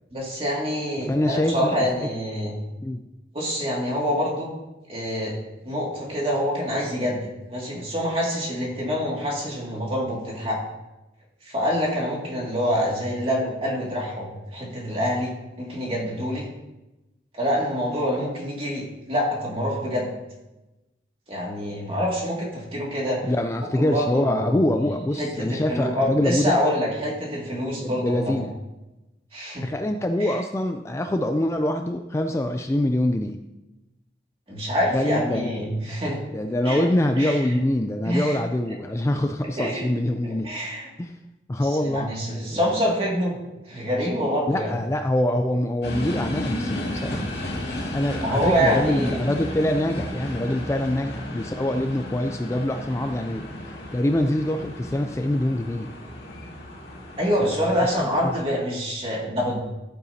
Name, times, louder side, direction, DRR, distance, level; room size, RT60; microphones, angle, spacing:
voice 1, 0.1-2.6 3.3-4.5 4.9-5.4 5.6-7.2 7.5-10.6 11.5-15.3 15.6-16.5 17.4-20.1 21.3-23.2 23.8-24.6 25.2-28.5 29.3-29.7 30.2-30.3 34.5-36.2 36.6-36.9 37.2-37.5 38.0-38.4 39.6-39.9 40.2-40.9 41.6-43.4 43.7-44.7 48.2-49.2 57.2-59.6, equal, 30° right, -3 dB, 2.2 m, -26 dB
voice 2, 1.0-1.9 2.8-3.0 23.2-26.6 27.8-28.5 29.6-33.4 34.9-35.9 36.3-40.5 41.0-41.2 41.5-42.1 42.5-42.6 44.5-53.5 53.9-55.9 57.4-58.3, left 1 dB, 15° left, 6 dB, 0.3 m, -25 dB
sound 1, 45.8-58.4, left 1 dB, 65° left, 2.2 m, -33 dB
11.0 x 9.1 x 2.8 m, 1.0 s
head